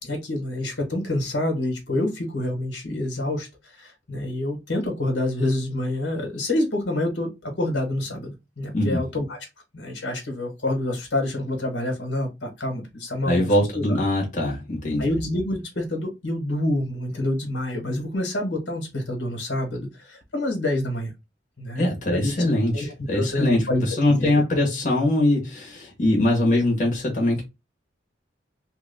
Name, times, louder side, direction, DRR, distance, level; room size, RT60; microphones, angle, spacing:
voice 1, 0.0-9.4 9.7-13.5 13.7-13.8 15.0-21.1 21.6-22.3 22.7-24.4, left 1 dB, 75° left, 1.4 m, -27 dB
voice 2, 13.2-15.0 21.8-27.4, left 1 dB, 45° left, 1.2 m, -22 dB
3.3 x 2.4 x 3.4 m
head